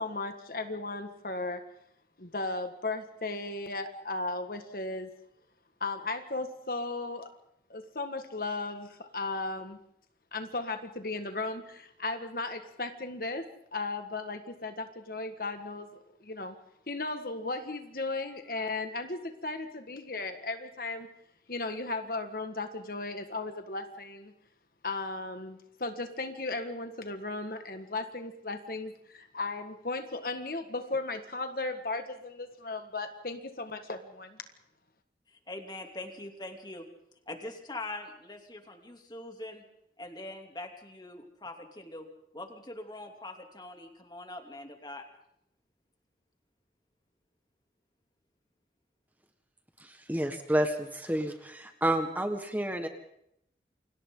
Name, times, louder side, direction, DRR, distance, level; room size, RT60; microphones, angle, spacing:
voice 1, 0.0-1.6 2.2-5.1 5.8-7.3 7.7-9.8 10.3-16.6 16.9-21.1 21.5-24.3 24.8-34.4, left 3 dB, 55° left, 7 dB, 1.8 m, -36 dB
voice 2, 35.3-36.9 37.3-39.7 40.0-42.1 42.3-45.0, left 2 dB, 25° left, 4 dB, 3.0 m, -43 dB
voice 3, 49.8-52.9, right 1 dB, 10° right, 5 dB, 1.6 m, -30 dB
29.0 x 25.5 x 3.9 m, 0.76 s
head